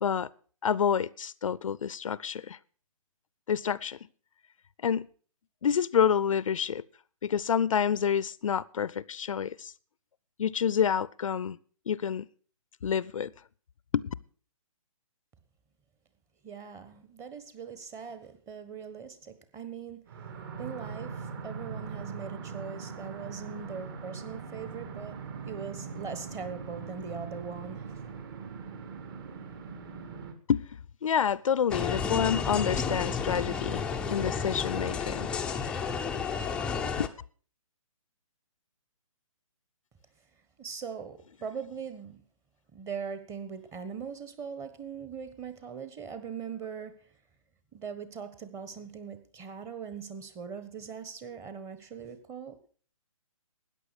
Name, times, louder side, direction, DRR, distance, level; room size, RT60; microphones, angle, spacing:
voice 1, 0.6-2.6 3.5-4.0 4.8-5.1 5.6-6.8 7.2-9.7 10.4-11.6 11.9-12.3 12.8-13.3 13.9-14.1 30.5-30.6 31.0-33.8 34.1-35.3 37.0-37.1, left 8 dB, 70° left, 0.6 m, -28 dB
voice 2, 16.4-20.1 20.6-28.0 40.6-42.2 42.7-46.9 47.7-52.7, right 6 dB, 15° right, 1.3 m, -41 dB
sound 1, 20.1-30.3, right 5 dB, 40° right, 2.1 m, -41 dB
sound 2, 31.7-37.1, left 6 dB, 5° left, 0.5 m, -31 dB
13.5 x 9.6 x 6.6 m
hypercardioid pair, 145°, 18 cm